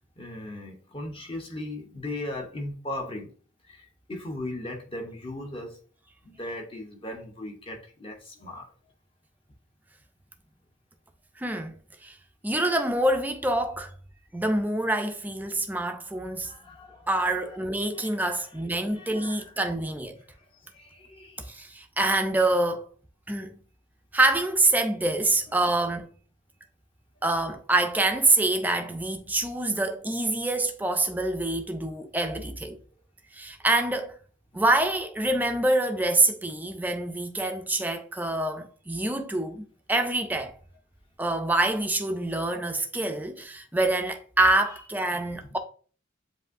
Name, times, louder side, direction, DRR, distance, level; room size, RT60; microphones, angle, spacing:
voice 1, 0.2-3.3 3.7-5.8 6.2-8.7 16.4-17.6 17.9-18.5 18.9-19.5 20.3-21.5, left 1 dB, 25° left, 0.8 m, -38 dB
voice 2, 11.4-12.2 12.4-13.9 14.3-16.5 17.1-20.2 21.4-22.9 23.3-23.5 24.1-26.1 27.2-32.8 33.3-34.2 34.5-40.5 41.2-45.6, right 2 dB, 10° right, 0.4 m, -26 dB
7.6 x 2.6 x 2.5 m
head